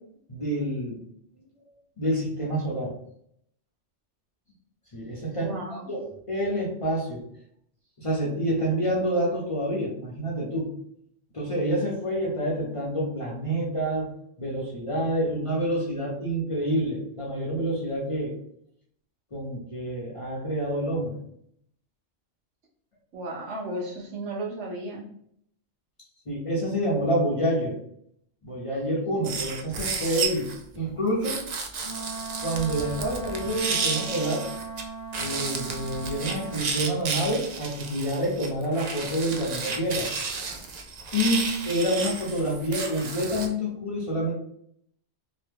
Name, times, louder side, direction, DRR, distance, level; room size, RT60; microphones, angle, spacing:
voice 1, 0.3-1.0 2.0-3.0 4.9-5.6 5.9-7.2 8.0-10.7 11.3-14.1 14.4-18.3 19.3-21.2 26.3-27.8 28.4-30.5 30.7-31.4 32.4-34.5 35.2-40.1 41.1-44.3, equal, 35° left, -4 dB, 0.6 m, -27 dB
voice 2, 5.4-6.0 23.1-25.1, right 1 dB, 80° right, -2 dB, 1.1 m, -34 dB
sound 1, 29.2-30.6 31.2-34.8 35.1-43.5, right 4 dB, 60° right, 0.4 m, -32 dB
Wind instrument woodwind instrument, 31.8-36.7, right 3 dB, 90° left, 1.0 m, -38 dB
3.0 x 2.2 x 3.4 m, 0.69 s
omnidirectional pair, 1.2 m